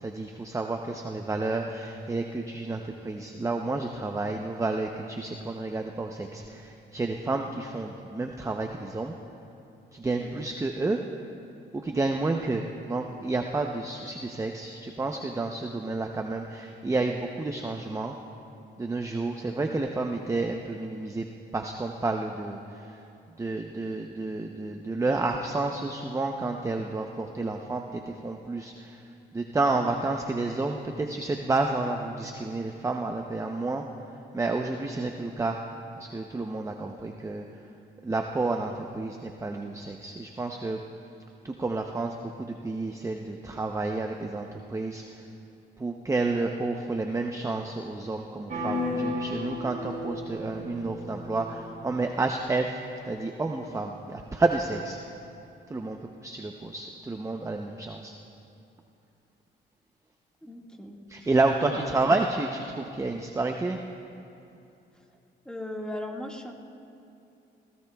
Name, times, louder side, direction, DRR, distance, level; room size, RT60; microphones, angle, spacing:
voice 1, 0.0-9.2 9.9-11.0 11.7-18.1 18.8-21.2 21.5-22.6 23.4-29.0 29.3-33.8 34.3-35.6 36.0-37.4 38.0-40.8 41.4-45.0 45.8-55.0 55.7-58.1 61.1-63.8, right 3 dB, 15° right, 3 dB, 0.7 m, -30 dB
sound 1, 48.5-52.3, left 1 dB, 40° right, 4.4 m, -34 dB
voice 2, 60.4-61.3 61.9-62.0 64.9-65.1 65.5-66.5, left 1 dB, 5° left, 0 dB, 1.8 m, -38 dB
30.0 x 16.5 x 2.3 m, 2.7 s
cardioid pair, 90°, 20 cm